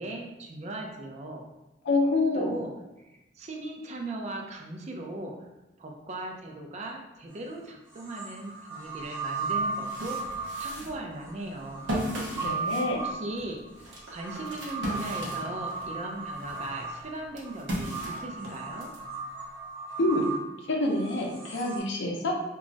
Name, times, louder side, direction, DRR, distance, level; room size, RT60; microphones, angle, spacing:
voice 1, 0.0-1.4 2.3-2.7 3.1-5.3 5.8-10.2 10.6-11.9 12.9-13.6 14.1-18.9, right 2 dB, 35° right, 0 dB, 0.4 m, -38 dB
voice 2, 1.8-2.6 12.3-13.0 20.0-20.3 20.7-22.3, left 2 dB, 85° left, 1 dB, 0.5 m, -27 dB
sound 1, 7.3-7.4 7.9-21.8, right 3 dB, 15° right, 0.8 m, -36 dB
sound 2, 9.0-9.1 9.6-15.9 16.4-19.0, equal, 85° right, 0.6 m, -37 dB
2.3 x 2.0 x 3.8 m, 0.97 s
head